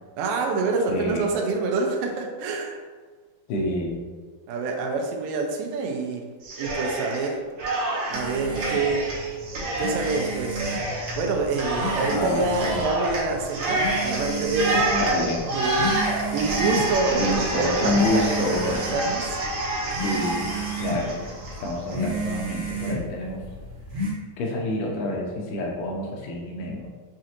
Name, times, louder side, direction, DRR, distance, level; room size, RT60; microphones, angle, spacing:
voice 1, 0.2-2.8 4.5-6.2 6.6-7.4 8.1-9.1 9.8-10.6 11.2-14.9 15.5-19.4, right 3 dB, 90° right, 2 dB, 2.3 m, -27 dB
voice 2, 0.9-1.3 3.5-4.0 12.1-12.8 14.9-15.4 17.1-18.7 20.0-21.3 21.6-23.4 24.4-26.9, left 1 dB, 80° left, -1 dB, 2.2 m, -28 dB
Cheering, 6.4-7.3 7.6-22.0, right 2 dB, 70° right, 1.5 m, -28 dB
sound 1, 8.1-24.1, right 2 dB, 50° right, 1.1 m, -33 dB
6.1 x 2.5 x 2.8 m, 1.5 s
omnidirectional pair, 3.9 m